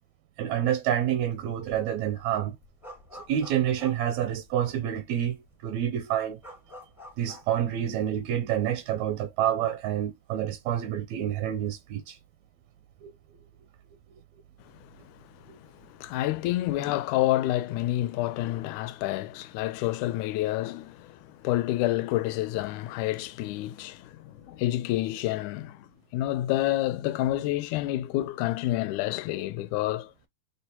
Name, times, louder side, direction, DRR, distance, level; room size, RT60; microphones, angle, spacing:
voice 1, 0.4-2.6 3.1-6.4 7.2-12.2 13.0-13.1, right 10 dB, 80° right, 1.6 m, -28 dB
sound 1, 1.0-1.3 1.6-4.8 5.3-5.4 5.6-7.5, left 1 dB, 5° right, 0.3 m, -47 dB
voice 2, 14.8-15.1 15.4-30.1, left 15 dB, 80° left, 1.9 m, -29 dB
6.5 x 2.2 x 2.8 m
omnidirectional pair, 3.6 m